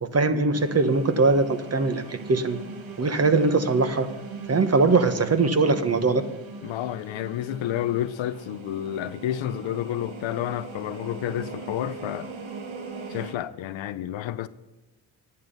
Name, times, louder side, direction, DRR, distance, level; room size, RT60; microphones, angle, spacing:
voice 1, 0.0-2.6 3.0-4.1 4.5-6.2, right 3 dB, 30° right, 1.3 m, -21 dB
sound 1, 0.5-13.3, right 4 dB, 70° right, 1.8 m, -40 dB
voice 2, 6.6-12.3 13.1-14.5, left 12 dB, 70° left, 0.7 m, -30 dB
11.0 x 8.8 x 5.5 m
supercardioid pair, 60°, 48 cm